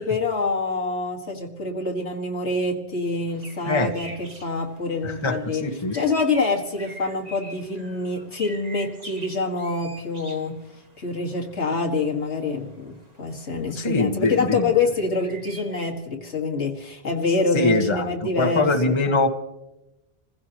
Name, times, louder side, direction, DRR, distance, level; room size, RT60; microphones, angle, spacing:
voice 1, 0.0-10.6 11.0-19.2, left 3 dB, 90° left, 1 dB, 2.1 m, -26 dB
sound 1, 3.3-15.9, right 2 dB, 35° right, 1.8 m, -45 dB
voice 2, 5.0-5.9 13.8-14.7 17.5-19.3, left 2 dB, 25° left, 3 dB, 1.4 m, -23 dB
28.5 x 16.0 x 3.0 m, 0.94 s
omnidirectional pair, 1.1 m